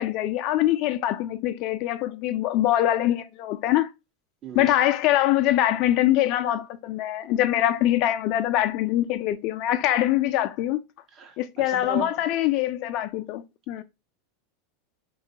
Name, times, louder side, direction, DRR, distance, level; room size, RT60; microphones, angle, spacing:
voice 1, 0.0-3.9 4.5-10.8 11.4-13.8, left 13 dB, 55° left, 0.3 m, -23 dB
voice 2, 4.4-4.9 11.1-12.2, right 6 dB, 40° right, 0.8 m, -37 dB
3.1 x 2.2 x 2.7 m
hypercardioid pair, 105°, 0 cm